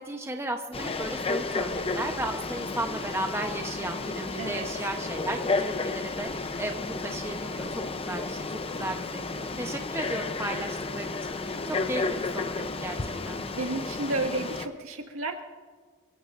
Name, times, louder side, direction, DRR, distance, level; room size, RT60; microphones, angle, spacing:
voice 1, 0.0-7.7 8.1-12.5 12.8-13.0 13.3-13.4, right 2 dB, 10° right, 3 dB, 1.0 m, -35 dB
Frog, 0.7-14.7, left 3 dB, 25° left, 0.7 m, -32 dB
voice 2, 4.4-4.7 13.2-15.4, right 2 dB, 65° right, 2 dB, 2.0 m, -32 dB
27.5 x 16.0 x 2.6 m, 1.5 s
head